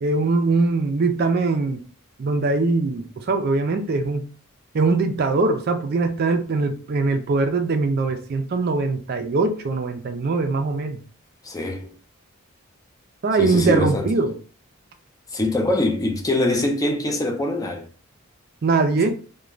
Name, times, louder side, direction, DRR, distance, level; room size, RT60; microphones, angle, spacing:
voice 1, 0.0-1.8 2.2-4.3 4.7-11.0 13.2-14.3 18.6-19.1, right 3 dB, 45° right, 0.4 m, -22 dB
voice 2, 11.4-11.9 13.4-14.1 15.3-17.9 19.0-19.1, left 1 dB, 15° left, 0.4 m, -23 dB
2.4 x 2.2 x 3.0 m
head